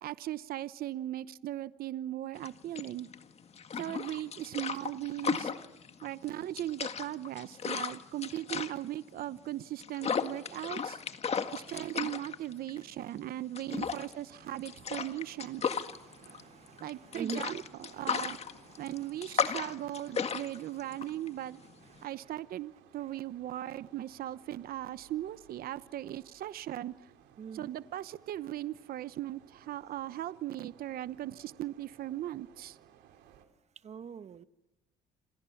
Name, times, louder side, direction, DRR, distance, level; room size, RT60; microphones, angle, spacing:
voice 1, 0.0-3.1 3.8-5.5 6.0-11.0 11.5-15.6 16.8-18.4 18.8-21.6 22.0-26.9 27.5-32.8, right 13 dB, 60° right, 0.9 m, -38 dB
sound 1, 2.4-22.1, left 6 dB, 40° left, 1.9 m, -36 dB
sound 2, 14.3-33.5, right 10 dB, 85° right, 3.7 m, -60 dB
voice 2, 15.9-17.4 18.7-18.8 21.9-22.1 27.4-27.7 33.8-34.4, right 6 dB, 40° right, 1.2 m, -44 dB
28.5 x 27.0 x 7.2 m
cardioid pair, 110°, 17 cm